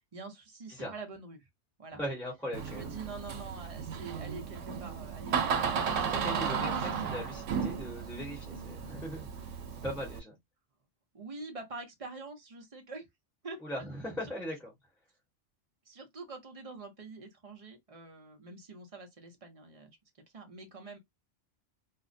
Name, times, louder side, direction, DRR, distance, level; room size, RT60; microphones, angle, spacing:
voice 1, 0.1-1.5 1.8-2.0 2.6-7.5 11.1-13.1 13.4-13.6 15.9-20.0 20.3-21.0, right 3 dB, 45° right, 0.5 m, -46 dB
voice 2, 1.9-2.9 6.1-9.5 9.8-10.4 13.6-14.7, equal, ahead, 0.9 m, -39 dB
Door, 2.5-10.2, right 6 dB, 85° right, 0.9 m, -34 dB
2.4 x 2.0 x 2.5 m
omnidirectional pair, 1.2 m